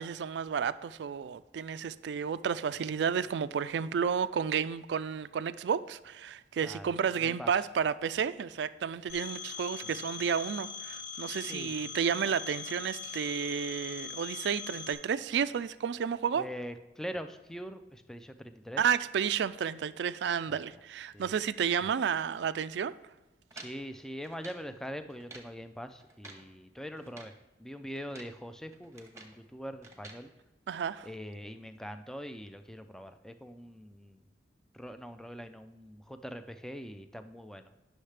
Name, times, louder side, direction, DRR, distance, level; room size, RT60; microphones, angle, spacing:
voice 1, 0.0-16.4 18.8-22.9 30.7-31.1, right 7 dB, 75° right, 15 dB, 0.3 m, -31 dB
voice 2, 6.6-7.5 9.8-10.0 11.5-11.9 16.4-18.8 20.5-20.6 21.1-21.3 23.5-27.3 27.6-30.3 31.0-34.2 34.7-37.7, equal, 5° left, 9 dB, 0.4 m, -43 dB
Telephone, 9.1-14.9, left 6 dB, 85° left, 1.5 m, -41 dB
sound 1, 23.5-24.7 25.1-25.6 26.0-26.5 27.0-27.4 27.9-28.4 28.7-29.4 29.8-30.2, right 3 dB, 15° right, 0.9 m, -51 dB
10.0 x 6.4 x 3.3 m, 1.1 s
head